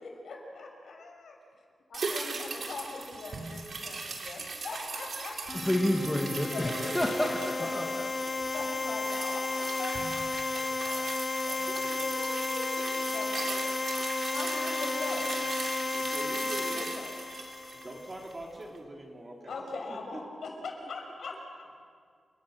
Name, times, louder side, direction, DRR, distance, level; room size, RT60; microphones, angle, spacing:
voice 1, 0.0-1.4 1.9-5.6 6.5-7.3 8.5-13.5 14.3-15.3 16.7-17.2 19.5-21.8, left 3 dB, 80° left, 2 dB, 5.7 m, -41 dB
sound 1, 1.9-18.4 18.7-18.8, right 4 dB, 55° right, 3.3 m, -39 dB
sound 2, 5.5-18.2, left 3 dB, 30° left, 0.9 m, -33 dB
voice 2, 5.5-8.1, left 1 dB, 10° left, 1 dB, 1.9 m, -29 dB
voice 3, 13.4-13.7 15.3-15.4 15.9-16.8 17.8-20.2, right 1 dB, 25° right, 0 dB, 3.5 m, -44 dB
29.0 x 24.0 x 6.5 m, 2.2 s
wide cardioid pair, 160°, 0 cm